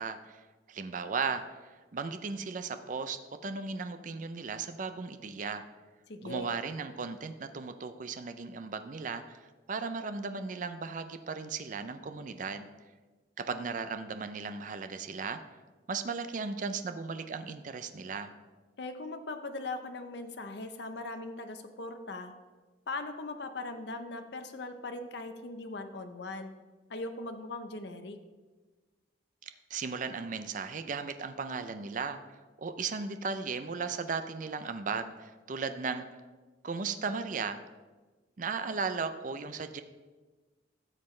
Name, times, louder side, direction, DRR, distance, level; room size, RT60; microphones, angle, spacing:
voice 1, 0.0-5.6 6.2-12.7 13.5-15.4 15.9-18.3 29.4-32.2 32.6-36.2 36.6-37.6 38.4-39.8, right 5 dB, 45° right, 9 dB, 0.4 m, -36 dB
voice 2, 6.1-6.5 18.8-22.4 22.9-26.5 26.9-28.2, left 2 dB, 65° left, 7 dB, 0.7 m, -40 dB
13.0 x 7.5 x 3.2 m, 1.3 s
head